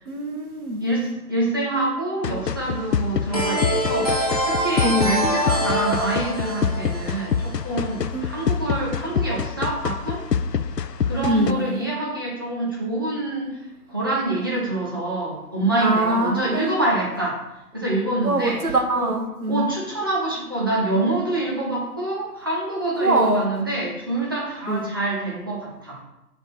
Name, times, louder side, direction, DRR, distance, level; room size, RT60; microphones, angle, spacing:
voice 1, 0.1-0.8 4.8-5.2 8.1-8.3 11.2-11.7 15.8-16.8 18.2-19.7 22.9-23.4 24.7-24.9, right 1 dB, 65° right, 3 dB, 1.5 m, -23 dB
voice 2, 0.8-10.2 11.0-17.4 17.7-19.1 19.5-26.0, right 2 dB, 15° right, -5 dB, 0.7 m, -26 dB
sound 1, 2.2-11.5, left 7 dB, 85° left, 0.6 m, -26 dB
sound 2, 3.3-8.0, equal, 25° left, 0.5 m, -25 dB
6.6 x 3.6 x 6.0 m, 0.92 s
figure-of-eight pair, 145°, 47 cm